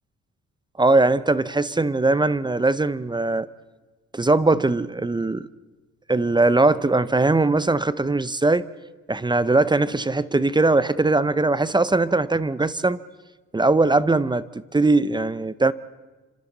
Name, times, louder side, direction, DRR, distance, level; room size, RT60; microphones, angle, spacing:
voice 1, 0.8-3.5 4.1-5.5 6.1-8.7 9.1-13.0 13.5-15.7, right 2 dB, 15° right, 0.6 m, -20 dB
29.0 x 26.0 x 4.1 m
cardioid pair, 90°, 30 cm